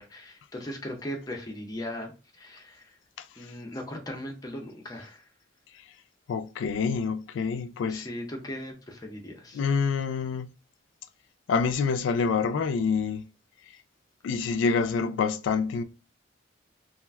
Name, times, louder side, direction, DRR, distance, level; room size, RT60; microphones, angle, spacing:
voice 1, 0.0-2.9 3.4-5.2 7.9-9.6, left 1 dB, 20° left, 0.5 m, -38 dB
voice 2, 6.3-8.1 9.5-10.5 11.5-13.3 14.2-15.8, left 5 dB, 90° left, 0.3 m, -27 dB
2.4 x 2.2 x 3.3 m
head